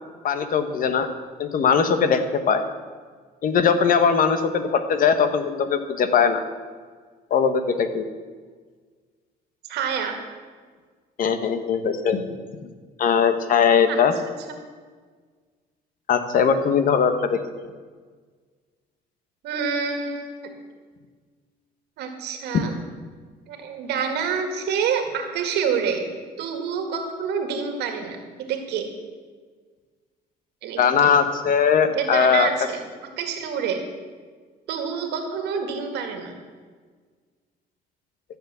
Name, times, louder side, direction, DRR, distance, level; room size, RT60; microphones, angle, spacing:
voice 1, 0.2-1.1 1.4-2.2 2.5-2.6 3.4-6.4 7.3-8.0 11.2-12.2 12.6-12.7 13.0-14.1 16.1-17.4 22.5-22.6 30.8-32.5, left 6 dB, 55° left, 9 dB, 1.2 m, -20 dB
voice 2, 9.7-10.2 13.9-14.0 19.4-20.4 22.0-22.7 23.5-26.1 26.4-28.2 28.5-28.9 30.6-31.1 31.9-32.8 33.2-33.8 34.7-36.3, right 6 dB, 80° right, 5 dB, 2.1 m, -27 dB
13.5 x 7.3 x 6.9 m, 1.5 s
cardioid pair, 110°, 17 cm